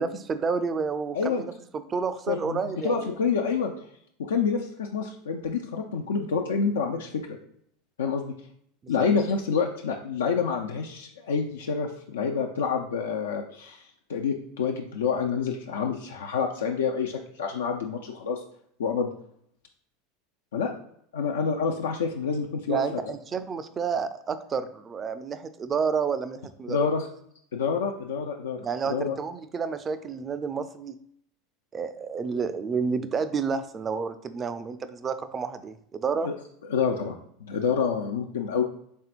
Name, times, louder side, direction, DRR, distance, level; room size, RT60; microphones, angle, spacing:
voice 1, 0.0-3.1 8.8-9.1 22.7-26.9 28.6-30.9 31.7-36.3, right 5 dB, 30° right, 12 dB, 0.4 m, -30 dB
voice 2, 2.3-3.7 4.2-7.2 8.0-8.3 8.9-13.8 14.1-18.4 18.8-19.1 20.5-20.7 21.1-22.8 26.7-27.1 27.5-29.2 36.2-36.3 36.7-38.6, left 5 dB, 90° left, 2 dB, 0.4 m, -28 dB
4.4 x 3.4 x 2.4 m, 0.68 s
hypercardioid pair, 100°, 0 cm